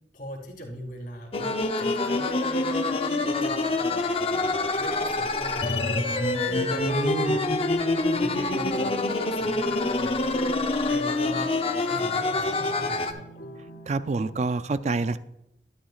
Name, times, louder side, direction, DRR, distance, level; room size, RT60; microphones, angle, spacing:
voice 1, 0.1-7.6 8.1-10.4 10.9-13.5, left 1 dB, 50° left, -2 dB, 3.5 m, -40 dB
sound 1, 1.3-13.1, left 2 dB, 35° left, 0.7 m, -26 dB
sound 2, 3.4-14.5, right 1 dB, 80° left, 2.9 m, -48 dB
voice 2, 6.9-7.4 13.9-15.2, right 3 dB, 40° right, 13 dB, 0.4 m, -27 dB
12.5 x 10.5 x 2.4 m, 0.85 s
head